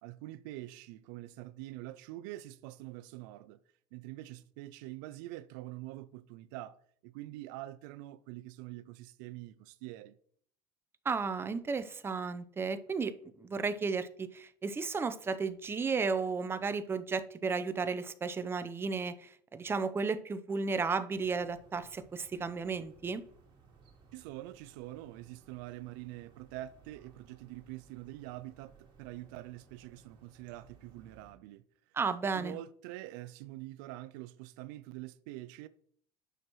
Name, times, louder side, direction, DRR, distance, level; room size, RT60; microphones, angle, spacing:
voice 1, 0.0-3.6 3.9-10.2 24.1-32.0 32.3-35.7, right 16 dB, 80° right, 0.4 m, -45 dB
voice 2, 11.0-13.1 13.4-23.2 31.9-32.6, right 4 dB, 25° right, 0.6 m, -34 dB
sound 1, 21.1-31.3, right 5 dB, 50° right, 2.5 m, -61 dB
9.0 x 6.1 x 3.0 m
supercardioid pair, 90°, 10 cm